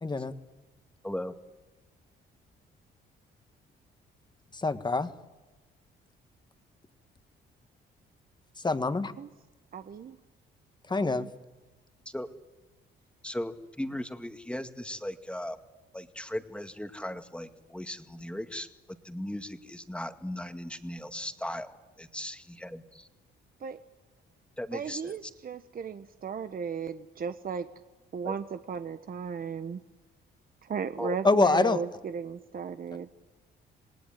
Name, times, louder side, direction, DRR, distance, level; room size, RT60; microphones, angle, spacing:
voice 1, 0.0-0.3 4.5-5.1 8.6-9.1 10.9-11.3 31.2-31.8, left 3 dB, 20° left, 9 dB, 1.7 m, -25 dB
voice 2, 1.0-1.3 12.1-12.3 13.2-15.6 15.9-23.1 24.6-25.3 28.2-28.4 31.0-31.2, left 1 dB, 5° left, 7 dB, 2.0 m, -37 dB
voice 3, 9.7-10.1 10.9-11.3 23.6-23.8 24.7-27.7 28.1-29.8 30.7-33.1, right 6 dB, 45° right, 9 dB, 1.1 m, -36 dB
27.5 x 19.5 x 9.3 m, 1.1 s
cardioid pair, 90°, 20 cm